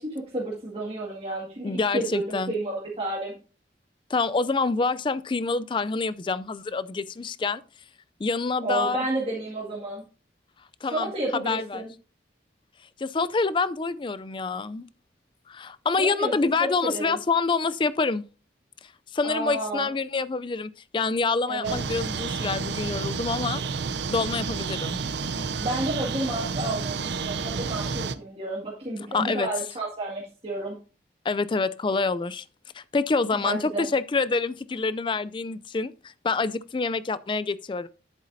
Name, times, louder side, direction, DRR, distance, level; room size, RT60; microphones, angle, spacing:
voice 1, 0.0-3.3 8.6-10.0 10.9-11.9 16.0-16.3 16.6-17.2 19.2-19.9 21.5-21.8 25.6-30.8 33.3-33.9, right 2 dB, 30° right, 2.0 m, -31 dB
voice 2, 1.6-2.5 4.1-7.6 8.2-9.1 10.8-11.8 13.0-14.9 15.5-18.2 19.1-23.6 24.1-25.0 29.1-29.5 31.2-32.4 32.7-37.9, left 4 dB, 25° left, 0.4 m, -27 dB
sound 1, 21.6-28.2, right 5 dB, 70° right, 0.6 m, -30 dB
10.5 x 8.1 x 2.7 m
head